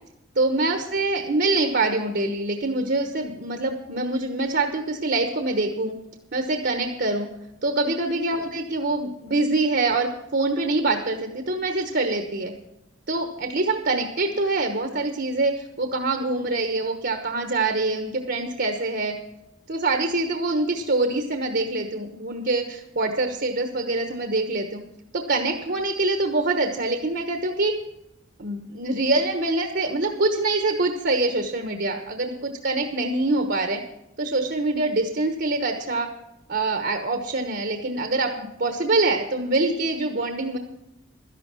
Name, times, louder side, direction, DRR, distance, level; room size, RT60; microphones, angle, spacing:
voice 1, 0.3-5.9 6.3-7.3 7.6-12.5 13.1-19.2 19.7-24.8 25.1-27.7 28.4-33.8 34.2-36.1 36.5-40.6, right 2 dB, 55° right, 5 dB, 1.1 m, -25 dB
12.5 x 11.0 x 6.2 m, 0.88 s
head